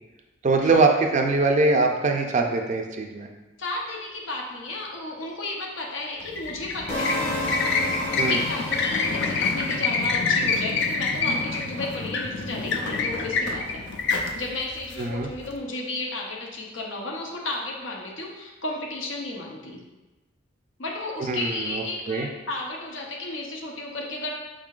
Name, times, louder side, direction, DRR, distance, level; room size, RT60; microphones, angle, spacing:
voice 1, 0.4-3.3 8.2-8.4 15.0-15.3 21.2-22.3, right 3 dB, 40° right, 3 dB, 0.4 m, -22 dB
voice 2, 3.6-7.5 8.1-13.8 14.3-19.8 20.8-24.3, left 2 dB, 80° left, -1 dB, 0.8 m, -33 dB
sound 1, 6.2-15.5, left 4 dB, 60° left, 0.4 m, -27 dB
sound 2, 6.9-10.9, left 1 dB, 30° left, 1.2 m, -32 dB
5.3 x 3.7 x 2.4 m, 1.1 s
head